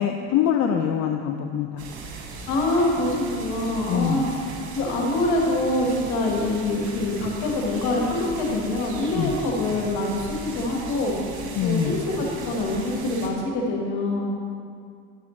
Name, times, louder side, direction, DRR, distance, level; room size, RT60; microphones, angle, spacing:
voice 1, 0.0-1.8 3.9-4.3 9.2-9.4 11.6-12.0, left 8 dB, 65° left, 4 dB, 0.6 m, -24 dB
sound 1, 1.8-13.3, right 3 dB, 80° right, 1.2 m, -38 dB
voice 2, 2.5-4.3 4.7-11.2 11.6-14.3, left 2 dB, 80° left, -1 dB, 1.5 m, -25 dB
10.0 x 6.8 x 3.1 m, 2.3 s
supercardioid pair, 75°, 30 cm